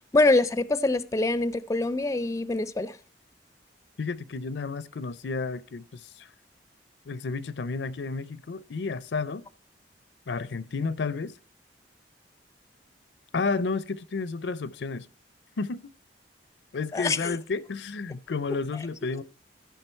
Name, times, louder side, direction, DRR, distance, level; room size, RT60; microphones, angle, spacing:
voice 1, 0.1-3.0 16.9-17.4 18.5-18.6, left 2 dB, 15° left, 0.4 m, -24 dB
voice 2, 4.0-6.3 7.1-9.4 10.3-11.3 13.3-15.1 15.6-15.9 16.7-19.2, left 4 dB, 75° left, 0.5 m, -31 dB
15.0 x 5.8 x 4.4 m
head